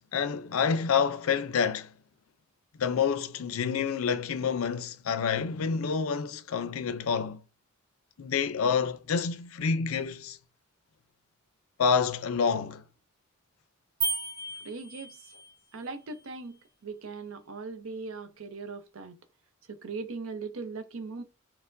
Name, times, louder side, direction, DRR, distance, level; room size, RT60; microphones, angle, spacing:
voice 1, 0.1-1.9 2.8-7.4 8.2-10.4 11.8-12.8, left 6 dB, 85° left, 0.5 m, -28 dB
sound 1, 14.0-15.5, right 3 dB, 15° right, 0.8 m, -33 dB
voice 2, 14.6-15.3 15.7-19.2 19.7-21.2, right 4 dB, 70° right, 0.6 m, -39 dB
4.4 x 2.0 x 2.5 m
head